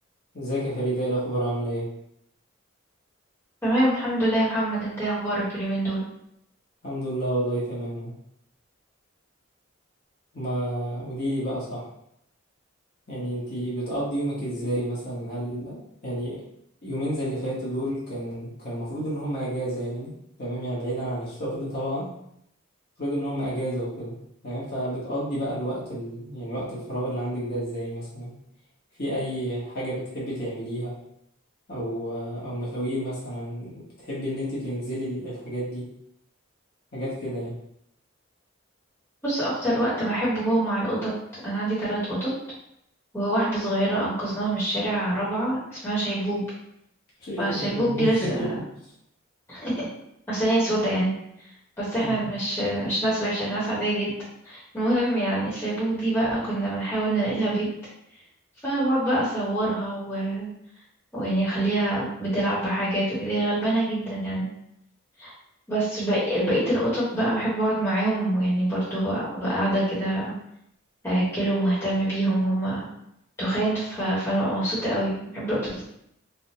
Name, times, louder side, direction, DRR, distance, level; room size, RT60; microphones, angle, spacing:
voice 1, 0.3-1.9 6.8-8.1 10.3-11.9 13.1-16.4 16.8-22.1 23.0-24.2 24.4-28.3 29.0-31.0 31.7-35.9 36.9-37.6 47.2-48.6 52.0-52.3, right 1 dB, 45° left, -8 dB, 0.9 m, -30 dB
voice 2, 3.6-6.0 39.2-41.1 41.4-42.3 43.1-46.5 47.4-48.5 49.5-49.9 50.3-51.1 51.8-54.1 54.4-57.7 58.6-60.5 61.1-64.5 65.2-65.3 65.7-70.3 71.0-72.8 73.4-75.8, right 1 dB, 10° left, -10 dB, 0.9 m, -25 dB
3.3 x 2.0 x 2.7 m, 0.76 s
head